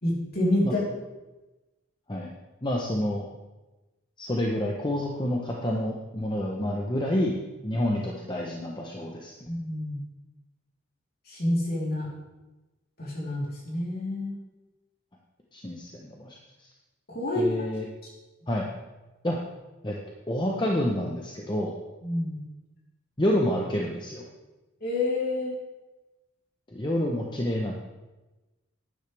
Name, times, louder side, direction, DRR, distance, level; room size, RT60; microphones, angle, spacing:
voice 1, 0.0-0.8 9.5-10.0 11.3-12.1 13.0-14.3 17.1-17.5 18.0-18.1 22.0-22.4 24.8-25.5, left 1 dB, 50° left, -5 dB, 3.5 m, -28 dB
voice 2, 2.6-3.3 4.2-7.4 7.6-9.3 15.5-16.7 17.4-17.8 18.5-18.7 19.2-19.4 19.8-19.9 20.3-21.7 23.2-24.2 26.7-27.7, left 1 dB, 20° left, -1 dB, 0.9 m, -28 dB
12.0 x 10.0 x 3.4 m, 1.1 s
head